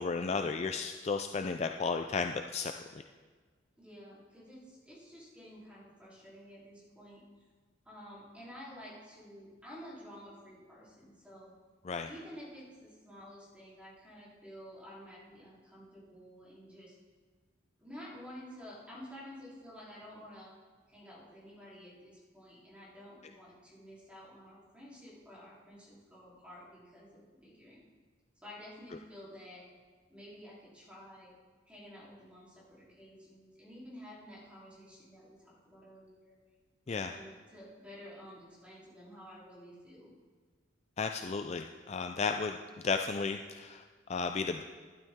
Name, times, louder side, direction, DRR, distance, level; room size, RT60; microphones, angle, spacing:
voice 1, 0.0-2.7 11.9-12.1 36.9-37.1 41.0-42.6 42.8-43.8 44.1-44.6, left 4 dB, 30° left, 5 dB, 0.3 m, -33 dB
voice 2, 3.8-7.2 7.9-11.5 12.0-17.0 17.8-20.5 20.9-27.8 28.4-29.7 30.1-31.3 31.7-36.3 36.9-40.1, equal, 5° right, -7 dB, 3.4 m, -51 dB
12.0 x 12.0 x 3.6 m, 1.5 s
head